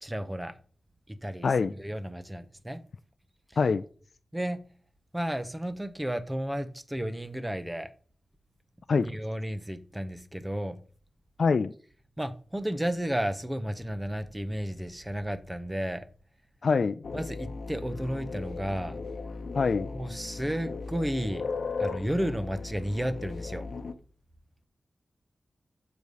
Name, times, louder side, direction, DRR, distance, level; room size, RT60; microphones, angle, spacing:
voice 1, 0.0-0.5 1.1-2.8 4.3-4.6 5.1-7.9 9.0-10.8 12.2-16.0 17.1-19.0 19.9-21.4 21.8-23.7, equal, 10° right, 0.7 m, -32 dB
voice 2, 11.4-11.7 16.6-17.0 19.6-19.9, left 4 dB, 65° left, 0.3 m, -24 dB
sound 1, 17.0-23.9, left 4 dB, 80° left, 0.8 m, -37 dB
6.8 x 4.8 x 5.3 m
wide cardioid pair, 125°, 0 cm